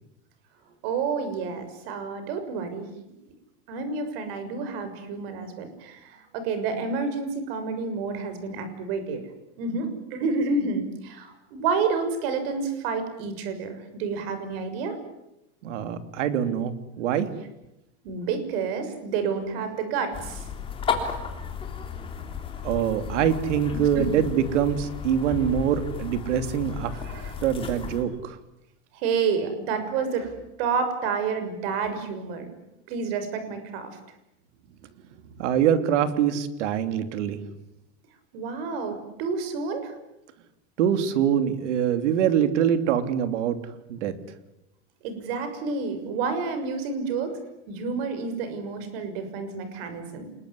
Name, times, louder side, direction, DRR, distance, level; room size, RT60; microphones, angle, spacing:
voice 1, 0.8-2.9 3.7-9.2 9.6-15.0 18.0-20.5 23.9-24.2 26.9-27.3 28.9-32.5 32.9-34.0 38.3-39.9 45.0-47.4 47.7-50.3, right 5 dB, 55° right, 9 dB, 6.5 m, -29 dB
voice 2, 15.6-17.3 22.6-26.9 27.4-28.4 35.4-37.4 40.8-43.6 43.9-44.1, right 9 dB, 85° right, 10 dB, 3.2 m, -24 dB
sound 1, 20.1-28.0, left 6 dB, 15° left, 3.4 m, -34 dB
28.0 x 21.5 x 9.9 m, 0.90 s
supercardioid pair, 170°, 35 cm